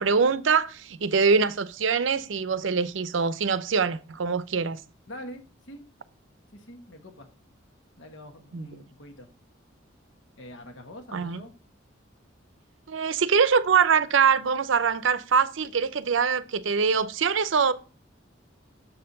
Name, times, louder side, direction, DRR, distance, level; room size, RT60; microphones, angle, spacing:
voice 1, 0.0-4.8 8.5-8.7 11.1-11.4 12.9-17.7, right 5 dB, 70° right, 0.6 m, -23 dB
voice 2, 5.1-5.8 6.5-7.3 8.0-9.3 10.4-11.5, left 1 dB, 65° left, 1.3 m, -44 dB
6.9 x 4.4 x 5.3 m
head